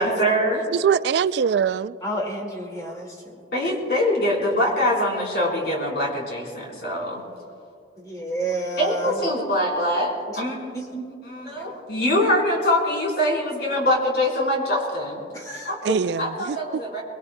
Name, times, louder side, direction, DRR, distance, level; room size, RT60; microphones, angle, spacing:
voice 1, 0.0-0.6 3.5-7.2 8.8-10.8 11.3-15.2 15.6-17.0, left 1 dB, 55° left, -2 dB, 3.9 m, -23 dB
voice 2, 0.7-2.0 15.8-16.8, right 7 dB, 65° right, 16 dB, 0.3 m, -23 dB
voice 3, 2.0-3.4 8.0-9.2 10.7-11.1 11.6-11.8 15.3-16.0, right 1 dB, 20° left, 0 dB, 1.9 m, -31 dB
23.5 x 21.0 x 2.2 m, 2.3 s
head